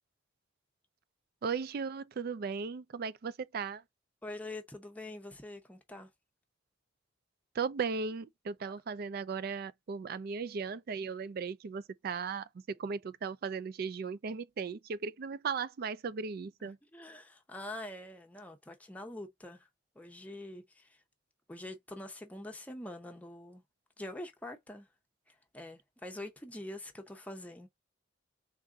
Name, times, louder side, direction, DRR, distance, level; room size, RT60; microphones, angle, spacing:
voice 1, 1.4-3.8 7.5-16.8, right 5 dB, 55° right, 0.4 m, -37 dB
voice 2, 4.2-6.1 16.9-19.7 19.9-21.0 21.5-23.6 24.0-24.9 25.3-27.7, left 1 dB, 10° left, 0.7 m, -45 dB
3.5 x 2.5 x 3.6 m
head